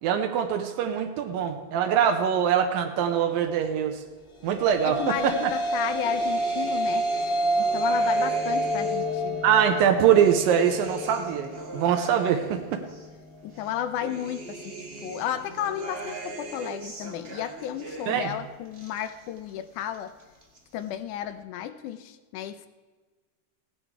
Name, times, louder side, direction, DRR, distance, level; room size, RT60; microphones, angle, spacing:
voice 1, 0.0-4.0 4.4-5.3 9.4-12.8 18.1-18.3, right 9 dB, 85° right, 4 dB, 2.6 m, -23 dB
sound 1, 4.5-13.0, right 1 dB, 50° left, 1.4 m, -28 dB
voice 2, 4.8-7.1 7.6-9.4 13.4-14.7 15.0-20.1 20.7-22.7, left 10 dB, 80° left, 12 dB, 1.9 m, -33 dB
sound 2, 5.5-9.2 9.6-13.1 13.5-18.4 18.6-19.5 19.8-20.6, right 2 dB, 60° right, 0.6 m, -41 dB
17.0 x 10.0 x 4.7 m, 1.4 s
omnidirectional pair, 4.1 m